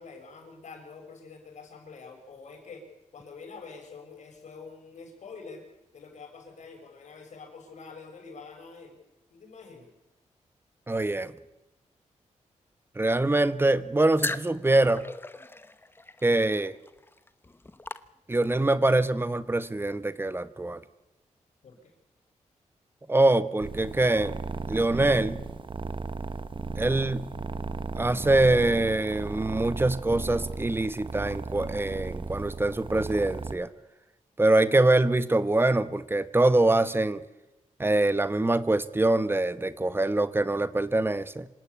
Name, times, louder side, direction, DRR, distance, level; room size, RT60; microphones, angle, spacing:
voice 1, 0.0-2.8 3.1-5.6 5.9-9.0 9.3-9.9 21.6-21.9, left 4 dB, 70° left, 4 dB, 6.8 m, -46 dB
voice 2, 10.9-11.3 12.9-15.0 16.2-16.7 18.3-20.8 23.1-24.3 24.7-25.4 26.8-27.3 27.9-33.7 34.4-37.2 37.8-41.5, right 2 dB, 20° right, 13 dB, 1.3 m, -24 dB
sound 1, 14.2-18.7, left 2 dB, 15° left, 1.0 m, -38 dB
sound 2, 23.6-33.6, right 4 dB, 40° right, 1.3 m, -36 dB
26.5 x 17.0 x 8.6 m, 0.96 s
cardioid pair, 95°, 12 cm